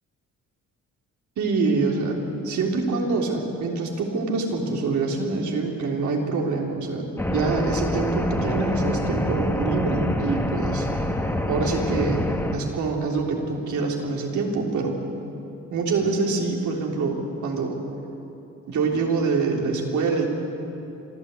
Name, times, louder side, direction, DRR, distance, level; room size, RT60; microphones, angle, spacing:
voice 1, 1.4-2.2 2.4-7.0 7.3-10.9 11.5-12.3 12.5-15.0 15.7-17.2 17.4-17.8 18.7-20.3, right 4 dB, 75° right, 0 dB, 3.6 m, -25 dB
sound 1, 7.2-12.5, left 1 dB, 10° left, 2.0 m, -26 dB
26.5 x 12.5 x 8.4 m, 2.9 s
cardioid pair, 90°, 30 cm